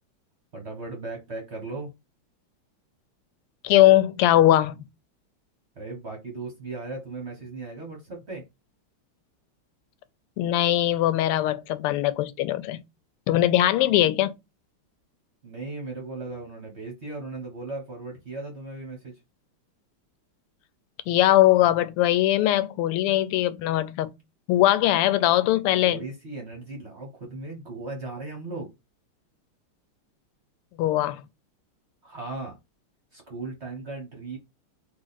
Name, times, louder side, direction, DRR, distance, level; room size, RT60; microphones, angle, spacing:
voice 1, 0.5-1.9 5.8-8.5 15.4-19.2 25.4-25.5 25.8-28.7 32.0-32.6 33.1-34.4, right 3 dB, 40° right, 1.1 m, -37 dB
voice 2, 3.6-4.9 10.4-12.8 13.3-14.3 21.1-24.1 24.5-26.0 30.8-31.2, left 14 dB, 90° left, 1.5 m, -21 dB
4.0 x 3.1 x 4.0 m
omnidirectional pair, 2.4 m